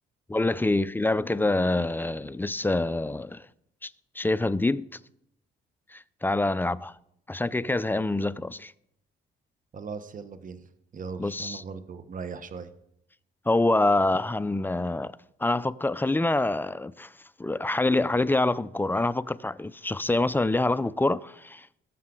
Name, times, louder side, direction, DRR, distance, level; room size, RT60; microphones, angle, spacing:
voice 1, 0.3-3.4 3.8-3.9 4.2-4.8 5.9-6.9 7.3-8.7 11.2-11.6 13.5-17.1 17.4-21.7, left 2 dB, 10° left, 0.4 m, -26 dB
voice 2, 9.7-10.6 10.9-12.7, right 5 dB, 40° right, 1.1 m, -38 dB
19.0 x 7.3 x 3.8 m
cardioid pair, 90°, 20 cm